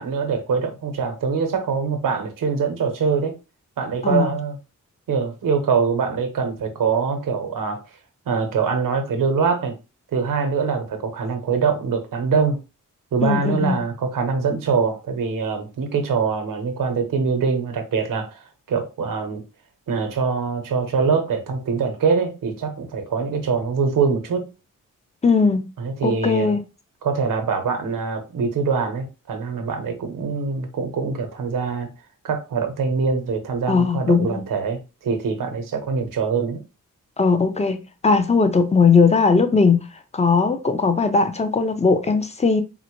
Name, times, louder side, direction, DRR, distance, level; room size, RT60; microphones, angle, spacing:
voice 1, 0.0-3.4 3.8-4.6 5.1-7.8 8.3-9.8 10.1-12.6 13.1-19.4 19.9-24.5 25.8-26.6 27.0-31.9 32.2-36.6, right 5 dB, 85° right, 0.8 m, -23 dB
voice 2, 4.0-4.3 13.2-13.8 25.2-25.7 26.0-26.6 33.7-34.4 37.2-39.8 40.1-42.6, left 4 dB, 20° left, 0.5 m, -18 dB
3.8 x 2.1 x 3.0 m
cardioid pair, 85°, 32 cm